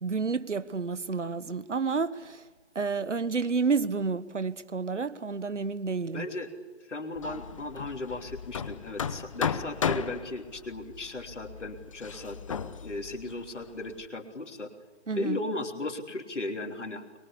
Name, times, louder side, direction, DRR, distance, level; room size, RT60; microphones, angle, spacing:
voice 1, 0.0-2.4 2.7-6.3 15.1-15.4, right 4 dB, 80° right, 1.5 m, -30 dB
voice 2, 6.1-6.5 6.9-14.7 15.2-17.2, left 2 dB, 75° left, 3.3 m, -36 dB
Hammer, 7.2-14.0, left 7 dB, 25° left, 0.8 m, -35 dB
25.5 x 23.0 x 8.3 m
figure-of-eight pair, 150°, 36 cm